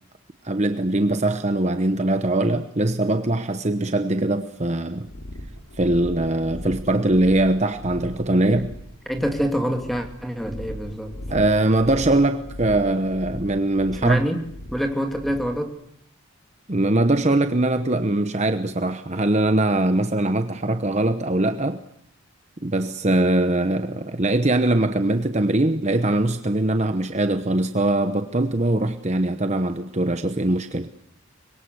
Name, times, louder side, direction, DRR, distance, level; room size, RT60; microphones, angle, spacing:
voice 1, 0.4-5.1 5.8-8.7 11.3-14.2 16.7-21.8 22.6-30.9, right 2 dB, 30° right, 1.0 m, -22 dB
sound 1, 5.0-15.6, left 1 dB, 75° left, 4.3 m, -38 dB
voice 2, 9.1-11.2 14.0-14.4 14.7-15.8, equal, ahead, 2.6 m, -26 dB
25.0 x 22.5 x 8.1 m
head